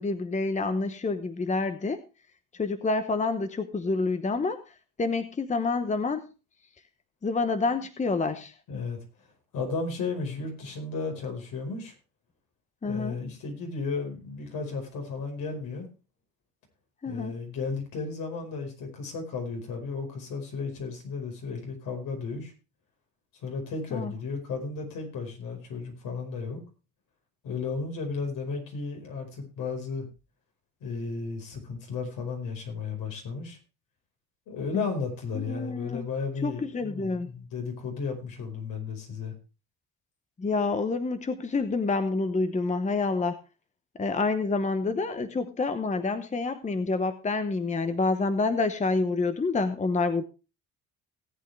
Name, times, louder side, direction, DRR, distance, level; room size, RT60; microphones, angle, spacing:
voice 1, 0.0-2.0 2.5-6.3 7.2-8.5 12.8-13.2 17.0-17.3 23.9-24.1 34.7-34.8 35.3-36.1 36.4-37.3 40.4-43.4 44.0-50.3, left 3 dB, 20° left, 10 dB, 1.0 m, -28 dB
voice 2, 8.7-9.3 9.5-11.9 12.8-15.9 17.0-22.5 23.3-26.6 27.4-30.1 30.8-33.6 34.5-39.3, left 4 dB, 70° left, 2 dB, 5.1 m, -34 dB
18.0 x 8.3 x 3.4 m, 0.31 s
cardioid pair, 95°, 34 cm